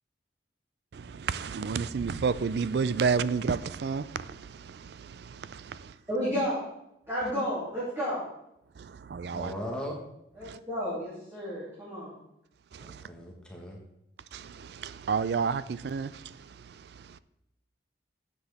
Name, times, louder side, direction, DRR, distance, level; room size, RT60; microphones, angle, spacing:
voice 1, 0.9-6.0 8.8-9.5 10.4-10.6 12.7-13.1 14.3-17.2, right 5 dB, 60° right, 0.4 m, -31 dB
voice 2, 6.1-6.6 7.1-8.2 10.3-12.2, equal, 15° right, 2.8 m, -32 dB
voice 3, 9.3-10.0 12.8-13.8, equal, 5° left, 1.3 m, -38 dB
10.0 x 7.6 x 3.5 m
head